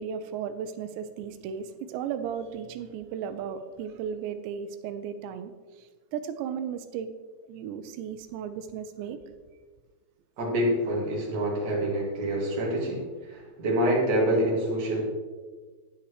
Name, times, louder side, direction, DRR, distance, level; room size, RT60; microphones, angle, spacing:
voice 1, 0.0-7.1 7.5-9.2, right 8 dB, 85° right, 10 dB, 2.7 m, -35 dB
voice 2, 10.4-15.0, right 1 dB, 65° right, -3 dB, 1.0 m, -26 dB
10.0 x 8.6 x 3.2 m, 1.4 s
omnidirectional pair, 5.3 m